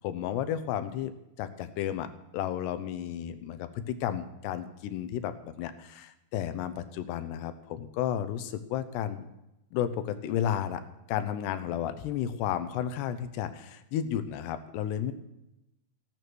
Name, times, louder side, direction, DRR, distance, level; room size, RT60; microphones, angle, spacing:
voice 1, 0.0-1.1 1.4-2.1 2.3-9.2 9.7-10.8 11.1-15.1, left 10 dB, 80° left, 11 dB, 2.8 m, -32 dB
16.0 x 9.6 x 6.2 m, 0.89 s
omnidirectional pair, 5.0 m